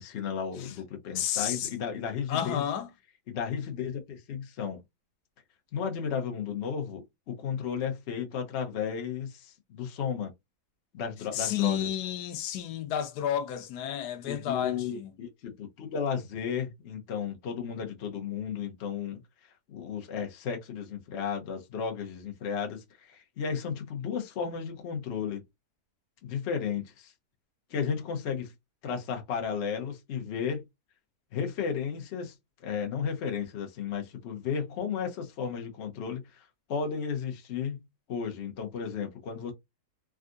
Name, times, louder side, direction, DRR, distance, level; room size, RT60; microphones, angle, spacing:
voice 1, 0.0-2.6 3.3-4.8 5.7-10.3 10.9-11.9 14.2-19.2 19.7-25.4 26.2-27.1 27.7-28.5 28.8-30.6 31.3-32.3 32.6-36.4 36.7-37.8 38.1-39.5, left 7 dB, 55° left, 0.9 m, -34 dB
voice 2, 1.1-1.7 2.3-2.9 11.3-15.1, left 10 dB, 90° left, 1.2 m, -31 dB
3.6 x 2.4 x 2.5 m
omnidirectional pair, 1.7 m